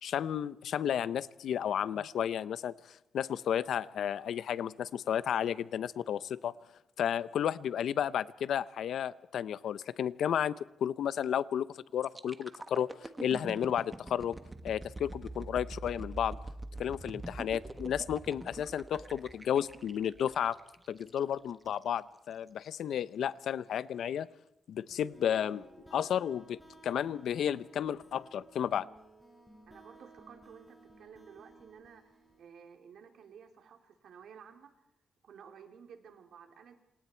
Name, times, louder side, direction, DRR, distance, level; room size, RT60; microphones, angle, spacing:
voice 1, 0.0-6.5 7.0-11.7 11.9-12.9 13.2-14.4 14.6-16.4 16.8-20.6 20.9-24.3 24.7-25.7 25.9-28.9, left 9 dB, 75° left, 0.7 m, -32 dB
sound 1, 12.0-21.8 22.3-22.5, right 2 dB, 15° right, 1.4 m, -45 dB
sound 2, 24.9-32.4, right 2 dB, ahead, 6.7 m, -57 dB
voice 2, 29.7-32.1 32.4-34.8 35.2-36.7, right 7 dB, 75° right, 3.3 m, -54 dB
28.0 x 27.0 x 4.5 m
wide cardioid pair, 155°, 0 cm